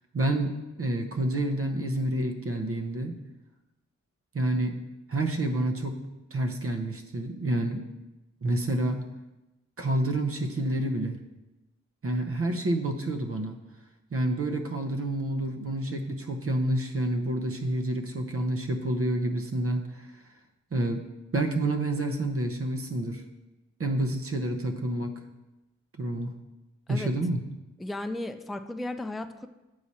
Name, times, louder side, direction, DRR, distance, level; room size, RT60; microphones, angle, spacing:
voice 1, 0.1-3.1 4.3-4.8 5.1-6.0 6.3-7.8 8.4-9.0 9.8-11.2 12.0-13.6 14.1-20.2 20.7-21.0 21.3-23.2 23.8-25.1 26.0-26.3 26.9-27.4, right 1 dB, 45° right, 4 dB, 0.8 m, -28 dB
voice 2, 27.8-29.5, left 2 dB, ahead, 8 dB, 0.3 m, -35 dB
7.1 x 4.8 x 4.2 m, 1.0 s
cardioid pair, 50°, 30 cm